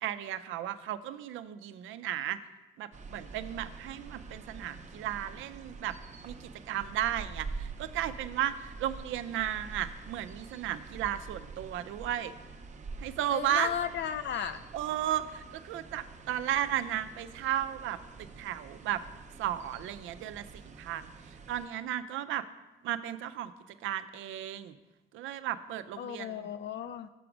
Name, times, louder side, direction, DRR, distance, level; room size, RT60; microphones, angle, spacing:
voice 1, 0.0-2.4 2.8-5.9 6.2-12.3 13.0-13.7 14.7-18.0 18.4-19.0 19.4-22.4 22.8-23.5 23.8-24.8 25.1-26.5, right 11 dB, 80° right, 12 dB, 0.5 m, -34 dB
sound 1, 2.9-21.7, right 4 dB, 35° right, 0.6 m, -46 dB
voice 2, 13.3-14.6 26.0-27.1, left 9 dB, 65° left, 12 dB, 0.5 m, -35 dB
6.8 x 5.0 x 5.9 m, 1.1 s
cardioid pair, 90°, 20 cm